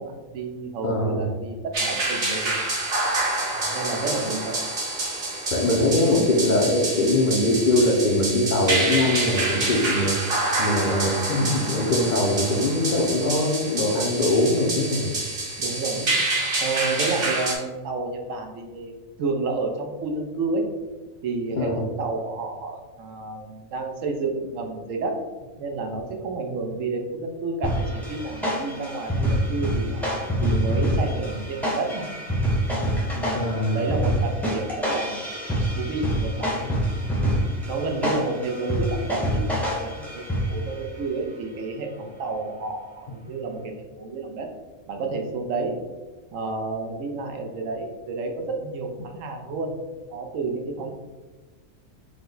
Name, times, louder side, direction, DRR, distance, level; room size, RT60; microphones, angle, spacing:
voice 1, 0.0-2.5 3.5-4.6 15.6-16.1 16.6-20.6 21.2-25.2 25.6-30.1 30.4-32.1 33.1-35.3 35.8-36.5 37.7-44.5 44.9-45.8 46.3-49.7 50.1-50.9, right 3 dB, 85° right, 3 dB, 1.0 m, -30 dB
voice 2, 0.8-1.2 5.5-10.1 10.6-15.1 21.6-21.8 33.3-33.7, left 1 dB, 55° left, -1 dB, 0.6 m, -22 dB
sound 1, 1.7-17.5, right 2 dB, 50° right, 1.1 m, -27 dB
sound 2, 27.6-40.8, equal, ahead, 0.6 m, -26 dB
4.8 x 2.1 x 3.8 m, 1.3 s
omnidirectional pair, 1.3 m